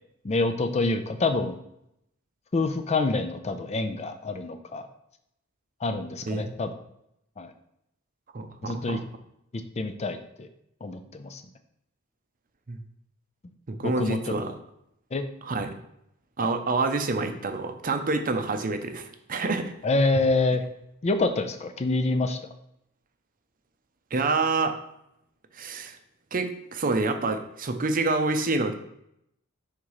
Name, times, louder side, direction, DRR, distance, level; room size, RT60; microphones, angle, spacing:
voice 1, 0.2-1.6 2.5-4.9 5.8-6.7 7.4-7.5 8.6-9.0 9.8-10.5 10.8-11.4 13.8-14.2 15.1-15.2 19.8-20.6 21.0-22.4, left 3 dB, 30° left, 8 dB, 0.5 m, -26 dB
voice 2, 8.3-9.0 12.7-12.8 13.7-14.5 15.4-15.7 16.4-19.7 24.1-24.8 25.5-26.0 26.3-28.7, right 3 dB, 40° right, 7 dB, 0.6 m, -27 dB
5.5 x 3.7 x 4.8 m, 0.78 s
head